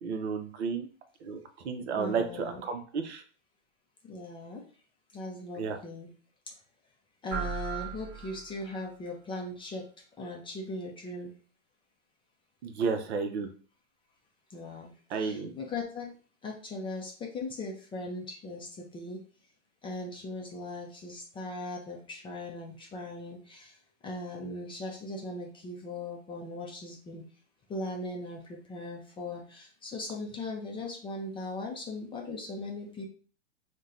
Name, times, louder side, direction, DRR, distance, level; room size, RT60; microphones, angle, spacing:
voice 1, 0.0-0.9 1.2-3.2 5.6-5.8 12.6-13.5 15.1-15.5, right 5 dB, 65° right, 6 dB, 0.7 m, -32 dB
voice 2, 2.0-2.6 4.0-4.6 5.1-6.1 7.2-9.9 10.2-11.3 14.5-16.1 16.4-19.2 19.8-23.8 24.0-27.2 27.7-33.0, left 2 dB, 15° left, 0 dB, 0.4 m, -39 dB
sound 1, 7.3-8.9, right 7 dB, 45° right, 1.0 m, -37 dB
2.7 x 2.2 x 3.6 m, 0.40 s
hypercardioid pair, 115°, 36 cm